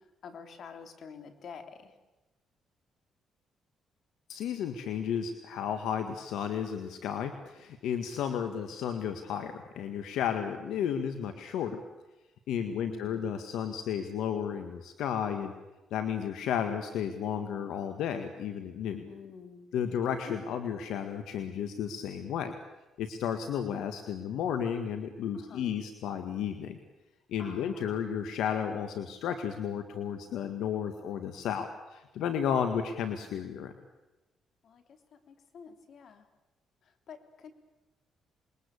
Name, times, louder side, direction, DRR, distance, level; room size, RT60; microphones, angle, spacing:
voice 1, 0.0-1.9 12.8-13.3 19.0-19.7 20.2-20.3 25.3-25.8 27.4-28.0 34.6-36.2 36.8-37.5, left 6 dB, 60° left, 8 dB, 3.3 m, -48 dB
voice 2, 4.3-11.8 12.5-15.5 15.9-19.1 19.7-22.5 23.0-26.8 27.3-33.7, left 8 dB, 85° left, 7 dB, 1.8 m, -33 dB
27.5 x 22.0 x 8.4 m, 1.1 s
cardioid pair, 90°, 0 cm